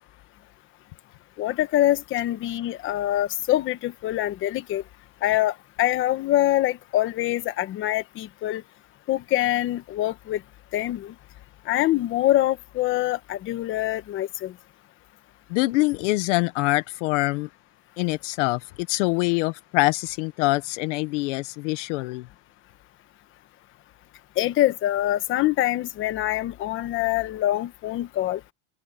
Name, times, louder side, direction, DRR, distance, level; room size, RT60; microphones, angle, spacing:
voice 1, 1.4-4.8 5.2-8.6 9.1-10.4 10.7-11.1 11.7-14.5 24.4-28.4, left 14 dB, 30° left, 1.2 m, -24 dB
voice 2, 15.5-17.5 18.0-22.3, left 22 dB, 55° left, 0.9 m, -24 dB
supercardioid pair, 165°, 43 cm